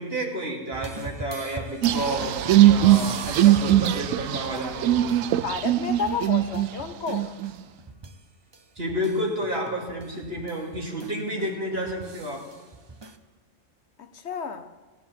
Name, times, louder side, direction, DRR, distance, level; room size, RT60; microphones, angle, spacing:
voice 1, 0.0-5.0 8.8-12.4, equal, 50° right, -1 dB, 2.8 m, -30 dB
sound 1, 0.7-8.2 8.5-13.2, right 2 dB, 30° right, 0.6 m, -41 dB
sound 2, 1.8-6.7 7.1-7.5, right 13 dB, 85° right, 1.0 m, -20 dB
voice 2, 5.4-7.3 14.0-14.7, left 5 dB, 60° left, 9 dB, 1.0 m, -31 dB
16.5 x 9.3 x 7.3 m, 1.2 s
omnidirectional pair, 1.3 m